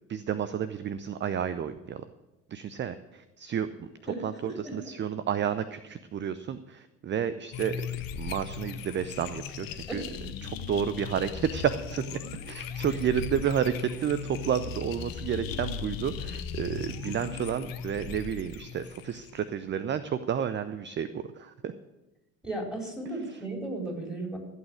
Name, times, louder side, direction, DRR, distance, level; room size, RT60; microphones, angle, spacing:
voice 1, 0.1-2.0 2.5-3.9 4.2-7.8 8.1-10.0 10.4-12.2 12.5-21.7 23.3-23.4, right 8 dB, 25° right, 13 dB, 0.7 m, -31 dB
voice 2, 4.1-4.8 9.9-10.0 22.4-24.4, right 2 dB, ahead, 0 dB, 4.8 m, -35 dB
sound 1, 7.5-19.5, left 7 dB, 45° left, 1.4 m, -38 dB
15.5 x 8.4 x 6.4 m, 1.1 s
figure-of-eight pair, 65°, 48 cm